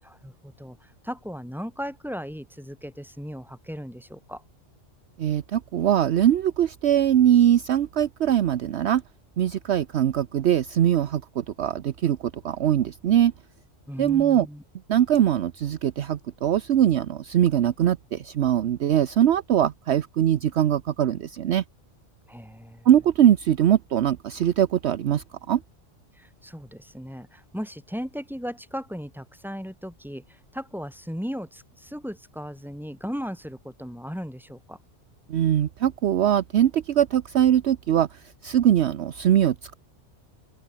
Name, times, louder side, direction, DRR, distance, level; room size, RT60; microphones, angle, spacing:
voice 1, 0.0-4.4 13.9-14.6 22.3-22.9 26.1-34.8, equal, ahead, 7.5 m, -37 dB
voice 2, 5.2-9.0 9.4-12.2 12.4-13.3 14.0-14.5 14.9-21.6 22.8-25.6 35.3-39.7, right 10 dB, 65° right, 1.0 m, -22 dB
open air
omnidirectional pair, 1.3 m